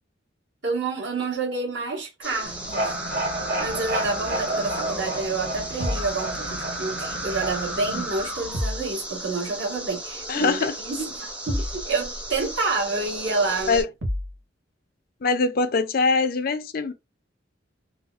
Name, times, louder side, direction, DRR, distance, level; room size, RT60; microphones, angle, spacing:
voice 1, 0.6-2.9 3.6-13.8, right 3 dB, 70° right, 1.4 m, -28 dB
sound 1, 2.2-13.8, right 1 dB, 5° right, 0.6 m, -34 dB
sound 2, 2.4-8.5, right 1 dB, 50° right, 1.2 m, -31 dB
sound 3, 5.8-6.2 8.5-8.9 11.5-11.8 14.0-14.4, left 1 dB, 90° right, 0.9 m, -28 dB
voice 2, 10.3-10.8 13.7-13.9 15.2-16.9, left 4 dB, 50° left, 0.4 m, -22 dB
3.9 x 2.0 x 2.4 m
head